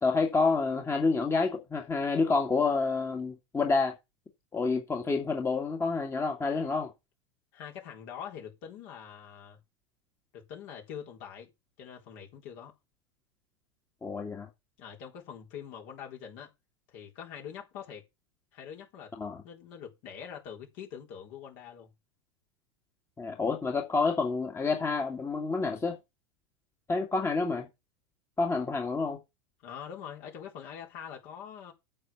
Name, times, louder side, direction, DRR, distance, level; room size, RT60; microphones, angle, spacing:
voice 1, 0.0-3.9 4.5-6.9 14.0-14.5 19.2-19.4 23.2-26.0 26.9-27.7 28.4-29.2, left 4 dB, 15° left, 2.2 m, -28 dB
voice 2, 7.5-9.6 10.3-11.5 11.8-12.7 14.8-16.5 16.9-18.1 18.5-19.1 19.4-21.9 29.6-31.7, left 8 dB, 55° left, 3.9 m, -44 dB
8.8 x 7.1 x 5.9 m
hypercardioid pair, 95°, 16 cm